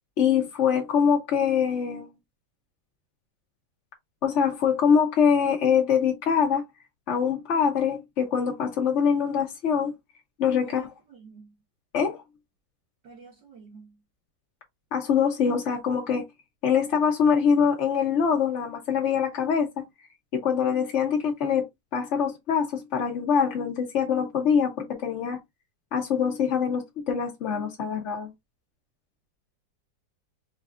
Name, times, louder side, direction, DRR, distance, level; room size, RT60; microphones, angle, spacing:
voice 1, 0.2-2.1 4.2-6.6 7.1-9.9 10.4-10.9 11.9-12.2 14.9-16.2 16.6-19.8 20.3-25.4 25.9-28.3, left 7 dB, 55° left, 0.9 m, -24 dB
voice 2, 10.6-11.6 13.0-14.0, right 5 dB, 70° right, 2.2 m, -50 dB
4.8 x 3.2 x 2.4 m
omnidirectional pair, 2.0 m